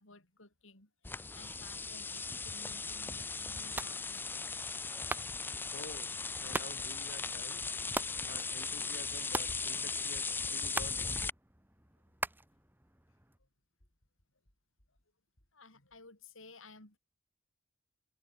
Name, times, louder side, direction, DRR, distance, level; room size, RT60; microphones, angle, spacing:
voice 1, 0.0-4.9 5.6-5.7 13.4-13.5 15.5-17.0, left 3 dB, 80° left, 6.2 m, -57 dB
sound 1, 1.0-11.3, left 4 dB, 10° left, 0.3 m, -38 dB
sound 2, 3.6-13.4, right 2 dB, 10° right, 2.0 m, -44 dB
voice 2, 5.7-6.1 6.4-7.6 8.2-11.1, left 2 dB, 50° left, 4.3 m, -50 dB
head